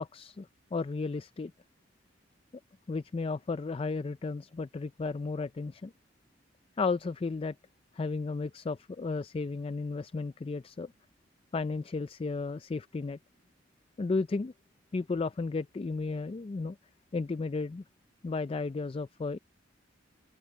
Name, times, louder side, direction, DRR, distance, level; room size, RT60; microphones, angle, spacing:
voice 1, 0.0-1.5 2.9-5.9 6.8-7.6 7.9-10.9 11.5-13.2 14.0-14.5 14.9-16.8 17.1-17.8 18.2-19.4, left 3 dB, 30° left, 0.4 m, -33 dB
head